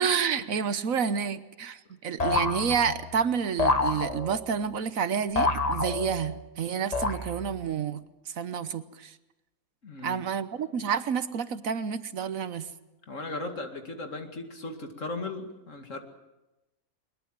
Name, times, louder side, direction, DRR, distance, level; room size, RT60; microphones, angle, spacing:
voice 1, 0.0-8.0 8.4-9.1 10.0-12.7, right 7 dB, 70° right, 13 dB, 1.3 m, -29 dB
sound 1, 2.2-3.1 3.6-4.5 5.4-6.4 6.9-7.6, left 3 dB, 30° left, 1.3 m, -28 dB
voice 2, 9.8-10.2 13.1-16.0, left 2 dB, 60° left, 5 dB, 2.6 m, -37 dB
21.5 x 21.0 x 7.5 m, 1.0 s
omnidirectional pair, 1.5 m